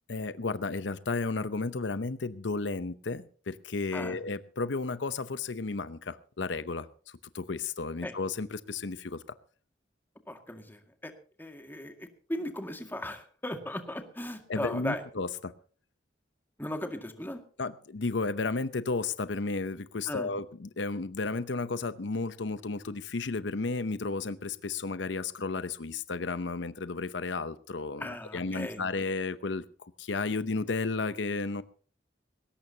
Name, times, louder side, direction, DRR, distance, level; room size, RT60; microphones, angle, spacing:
voice 1, 0.1-9.2 14.5-15.5 17.6-31.6, left 3 dB, 80° left, 13 dB, 0.8 m, -33 dB
voice 2, 10.3-11.1 11.4-15.0 16.6-17.4 20.1-20.3 28.0-28.9, left 1 dB, 10° left, 5 dB, 2.0 m, -37 dB
20.0 x 17.5 x 2.8 m, 0.41 s
head